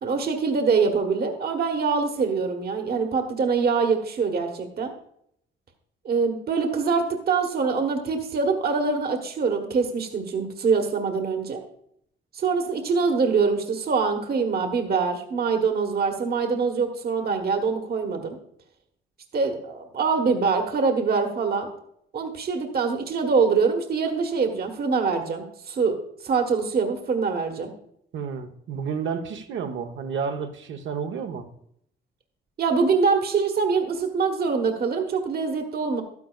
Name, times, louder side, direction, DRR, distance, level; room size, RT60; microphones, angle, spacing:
voice 1, 0.0-4.9 6.0-11.6 12.3-18.4 19.3-21.7 22.1-27.7 32.6-36.0, right 5 dB, 50° right, 4 dB, 1.3 m, -24 dB
voice 2, 28.1-31.5, right 6 dB, 70° right, 7 dB, 1.0 m, -31 dB
12.0 x 9.6 x 2.4 m, 0.70 s
cardioid pair, 90°, 20 cm